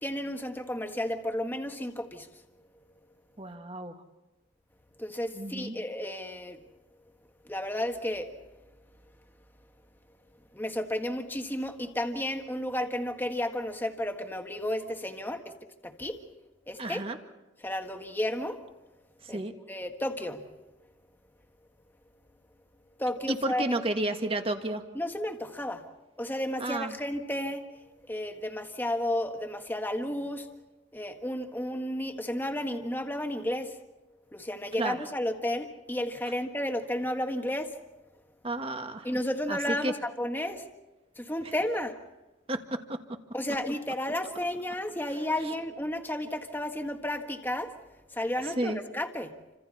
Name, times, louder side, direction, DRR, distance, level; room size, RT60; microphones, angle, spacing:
voice 1, 0.0-2.3 5.0-6.6 7.5-8.3 10.5-15.5 15.8-16.2 16.7-17.0 17.6-18.6 19.3-19.4 19.7-20.4 23.0-23.7 25.0-25.8 26.2-27.7 28.1-30.5 30.9-33.8 34.3-37.7 39.0-40.6 41.2-42.0 43.3-47.7 48.1-49.3, left 1 dB, 10° left, 4 dB, 1.6 m, -32 dB
voice 2, 3.4-4.0 5.3-5.8 16.8-17.2 19.3-19.5 23.3-24.8 26.6-26.9 34.8-35.0 38.4-39.1 39.5-39.9 42.5-42.8 48.6-48.8, right 1 dB, 30° right, 6 dB, 1.7 m, -31 dB
29.5 x 26.0 x 4.3 m, 1.1 s
head